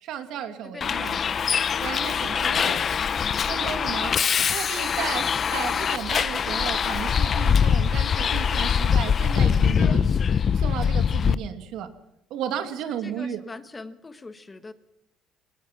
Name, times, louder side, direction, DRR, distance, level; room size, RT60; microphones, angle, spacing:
voice 1, 0.0-1.2 1.8-2.8 3.5-4.2 4.5-10.1 10.5-11.9 12.3-13.4, right 9 dB, 70° right, 8 dB, 2.5 m, -34 dB
voice 2, 0.6-1.5 12.9-14.7, left 3 dB, 20° left, 11 dB, 1.4 m, -42 dB
Bus, 0.8-11.3, left 7 dB, 35° left, 0.7 m, -23 dB
23.5 x 19.0 x 6.1 m, 0.77 s
cardioid pair, 130°, 0 cm